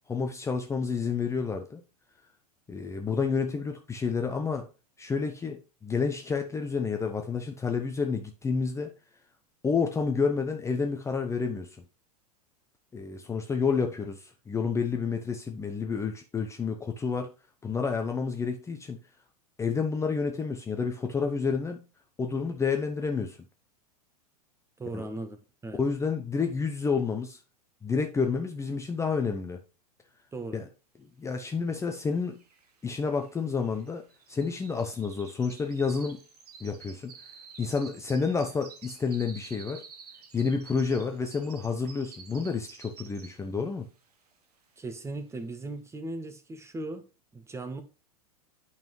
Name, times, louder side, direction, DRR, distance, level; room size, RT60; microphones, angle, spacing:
voice 1, 0.1-1.8 2.7-4.7 5.0-8.9 9.6-11.8 12.9-17.3 17.6-19.0 19.6-21.8 22.2-23.4 24.9-25.1 25.8-27.4 27.8-29.6 30.5-30.7 31.2-32.4 32.8-36.2 36.6-37.1 37.6-39.8 40.3-43.9, left 5 dB, 15° left, 0.7 m, -29 dB
voice 2, 24.8-25.4 25.6-25.8 30.3-30.6 44.8-47.0 47.3-47.8, right 2 dB, 15° right, 1.1 m, -37 dB
sound 1, 31.9-32.0 32.2-43.6 44.0-44.3 44.8-44.9, right 6 dB, 75° right, 1.6 m, -50 dB
8.8 x 5.6 x 3.1 m
hypercardioid pair, 95°, 20 cm